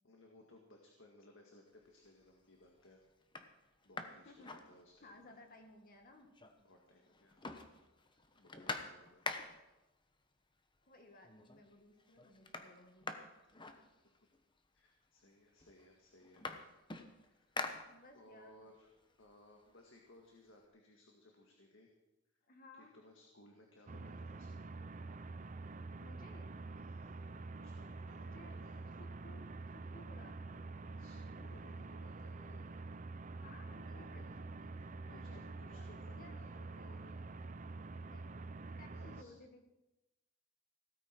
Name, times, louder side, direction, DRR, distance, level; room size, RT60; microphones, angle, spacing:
voice 1, 0.0-3.0 3.8-5.4 6.6-7.8 8.4-9.3 14.0-14.2 14.7-16.4 17.2-17.6 18.1-21.9 22.7-24.7 26.7-27.2 27.5-28.9 30.9-32.8 33.9-34.2 34.7-37.2 38.9-39.3, left 1 dB, 65° left, 1 dB, 1.8 m, -62 dB
sound 1, 1.8-2.3 2.8-2.9 3.2-5.3 5.6-5.7 6.0-6.8 7.1-9.8 10.7-10.8 11.2-11.7 12.0-14.4 15.2-15.3 15.6-18.4 18.8-20.6, left 3 dB, 25° left, 1.0 m, -46 dB
voice 2, 4.2-4.6 5.0-6.3 8.4-8.8 10.8-13.1 17.9-18.7 22.5-22.9 26.0-26.5 28.1-28.6 29.0-29.4 29.7-30.7 33.4-36.5 37.8-38.4 38.8-39.6, left 2 dB, 45° left, 4 dB, 1.9 m, -60 dB
sound 2, 23.9-39.2, right 3 dB, 40° right, 0.6 m, -47 dB
17.0 x 14.0 x 4.5 m, 0.99 s
head